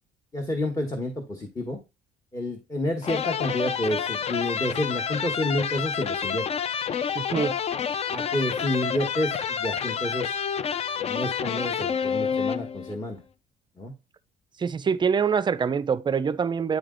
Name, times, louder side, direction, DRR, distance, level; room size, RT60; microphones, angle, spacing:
voice 1, 0.3-1.8 2.3-6.5 8.1-10.7 11.0-13.2 13.8-13.9, left 1 dB, 20° left, 1.3 m, -29 dB
sound 1, 3.0-13.0, left 7 dB, 35° left, 0.4 m, -29 dB
voice 2, 7.1-7.6 14.6-16.8, right 6 dB, 25° right, 0.4 m, -25 dB
9.3 x 3.2 x 3.8 m
cardioid pair, 110°, 17 cm